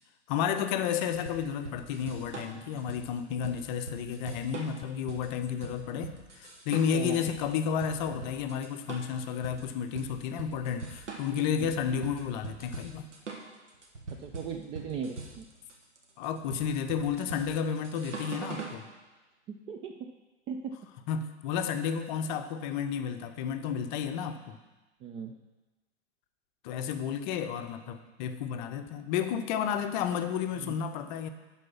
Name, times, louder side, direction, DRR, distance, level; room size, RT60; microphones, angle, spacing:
voice 1, 0.3-13.1 16.2-18.9 21.1-24.6 26.6-31.3, left 7 dB, 40° left, 8 dB, 0.7 m, -32 dB
sound 1, 1.3-18.8, right 4 dB, 80° right, 1.5 m, -42 dB
voice 2, 14.2-15.5 19.5-20.1 20.5-20.8 25.0-25.3 30.6-30.7, right 6 dB, 15° right, 3 dB, 0.3 m, -38 dB
11.0 x 4.2 x 5.9 m, 1.2 s
figure-of-eight pair, 100°, 35 cm